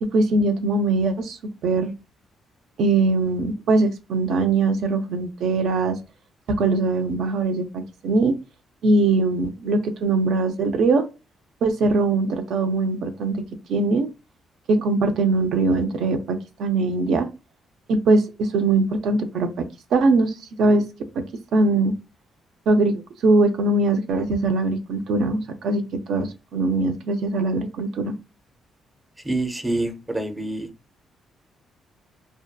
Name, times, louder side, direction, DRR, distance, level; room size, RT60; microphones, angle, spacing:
voice 1, 0.0-1.9 2.8-6.0 6.5-8.3 8.8-11.0 11.6-14.1 14.7-17.3 17.9-19.7 19.9-20.8 21.5-22.0 22.7-28.2, right 3 dB, 75° right, 7 dB, 0.4 m, -21 dB
voice 2, 29.2-30.7, right 2 dB, 10° right, 8 dB, 0.5 m, -26 dB
2.6 x 2.2 x 2.3 m, 0.28 s
cardioid pair, 90°, 0 cm